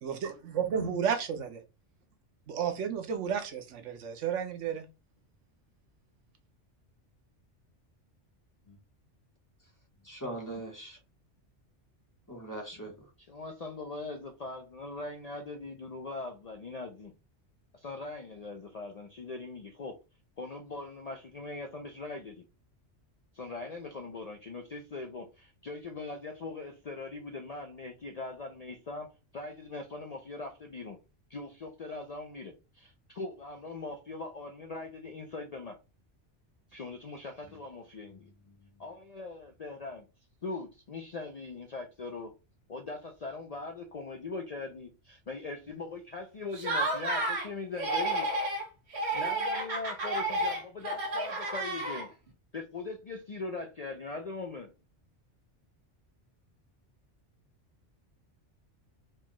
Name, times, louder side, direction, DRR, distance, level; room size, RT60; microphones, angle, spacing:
voice 1, 0.0-1.6 2.5-4.8, right 7 dB, 85° right, 1.0 m, -32 dB
voice 2, 10.0-11.0 12.3-13.1, right 1 dB, 15° left, 0.9 m, -40 dB
voice 3, 13.3-17.1 17.7-20.0 20.4-22.4 23.3-31.0 31.3-35.8 36.7-40.1 40.4-42.4 42.7-48.3 49.1-52.1 52.5-54.7, left 3 dB, 50° left, 0.5 m, -41 dB
Laughter, 46.5-47.5 47.8-48.6 48.9-52.3, right 2 dB, 65° right, 1.5 m, -31 dB
4.5 x 2.3 x 3.0 m
omnidirectional pair, 1.2 m